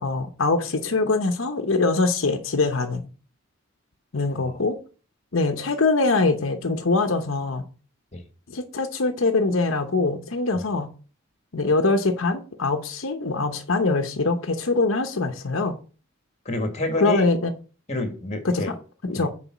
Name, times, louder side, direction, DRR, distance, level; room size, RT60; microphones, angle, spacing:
voice 1, 0.0-3.0 4.1-4.8 5.3-7.6 8.5-10.9 11.5-15.8 17.0-17.5 18.4-18.8 19.0-19.3, left 3 dB, 75° left, 0.9 m, -23 dB
voice 2, 16.5-17.2 17.9-18.7 19.1-19.3, left 1 dB, 35° left, 1.7 m, -28 dB
7.0 x 4.8 x 6.0 m
head